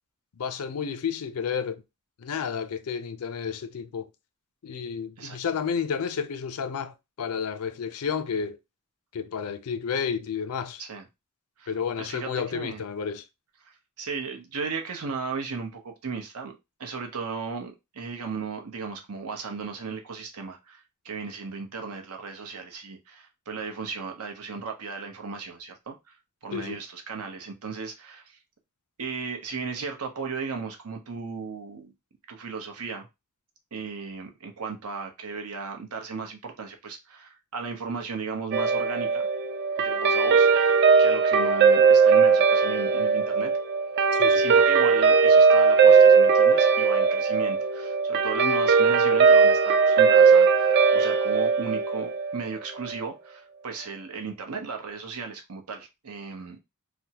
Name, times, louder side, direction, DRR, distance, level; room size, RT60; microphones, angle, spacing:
voice 1, 0.4-1.8 2.2-4.1 4.6-8.6 9.1-10.8 11.7-13.2 26.5-26.8 44.1-44.4, left 6 dB, 75° left, 0.4 m, -31 dB
voice 2, 11.6-12.8 13.6-16.5 16.8-26.2 26.4-28.4 29.0-31.9 32.3-33.1 33.7-39.3 39.8-43.5 44.3-56.6, right 5 dB, 85° right, 0.8 m, -36 dB
Guitar, 38.5-53.1, right 5 dB, 50° right, 0.3 m, -19 dB
3.4 x 2.0 x 2.8 m
head